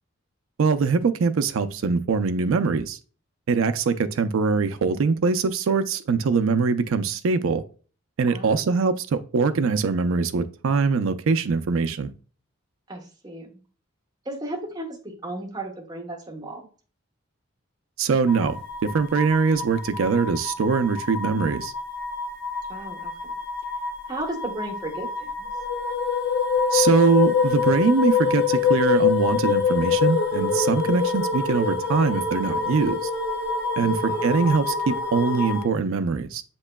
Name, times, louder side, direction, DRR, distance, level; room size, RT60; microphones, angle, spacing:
voice 1, 0.6-3.0 3.5-7.6 8.2-12.1 18.0-21.7 26.7-33.1 33.8-36.4, right 5 dB, 70° right, 0.4 m, -22 dB
voice 2, 8.3-8.6 12.9-13.5 14.2-16.6 22.7-23.3 24.1-25.5 30.9-31.2 33.8-34.3, right 2 dB, 20° right, 0.9 m, -35 dB
sound 1, 18.3-35.6, left 5 dB, 60° left, 0.8 m, -26 dB
7.2 x 3.0 x 2.2 m
head